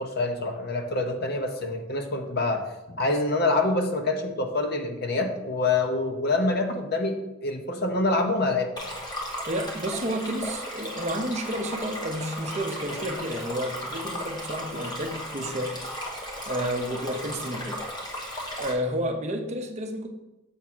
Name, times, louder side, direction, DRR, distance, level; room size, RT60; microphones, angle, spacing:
voice 1, 0.0-8.9, left 2 dB, 50° left, 5 dB, 0.8 m, -26 dB
Stream, 8.8-18.7, equal, 20° left, 1.1 m, -35 dB
voice 2, 9.5-15.7 16.5-17.8 18.6-20.1, equal, 30° right, 4 dB, 0.7 m, -31 dB
7.2 x 3.6 x 6.0 m, 0.96 s
head